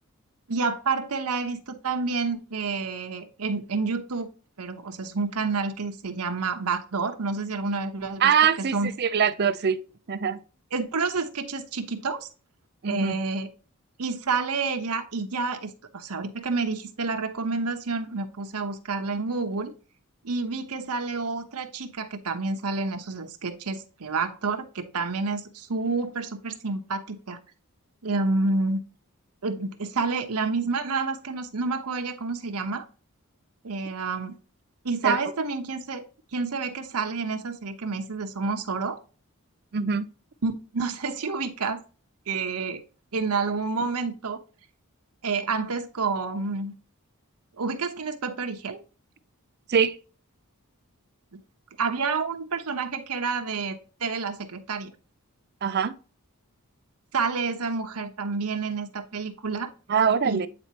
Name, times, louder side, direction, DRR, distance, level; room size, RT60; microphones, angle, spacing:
voice 1, 0.5-4.3 4.6-8.2 8.6-8.9 10.7-12.3 12.8-13.5 14.0-19.7 20.2-27.4 28.0-28.8 29.4-32.9 33.6-34.4 34.8-36.0 36.3-39.0 40.4-41.8 42.3-42.8 43.1-44.4 45.2-46.7 47.6-48.8 51.3-51.4 51.8-54.9 57.1-59.7 60.2-60.4, right 4 dB, 85° right, 1.0 m, -29 dB
voice 2, 8.2-9.8 10.1-10.4 12.8-13.1 35.0-35.2 39.7-40.1 49.7-50.0 55.6-55.9 59.9-60.5, right 7 dB, 45° right, 0.5 m, -23 dB
8.7 x 4.2 x 2.9 m
head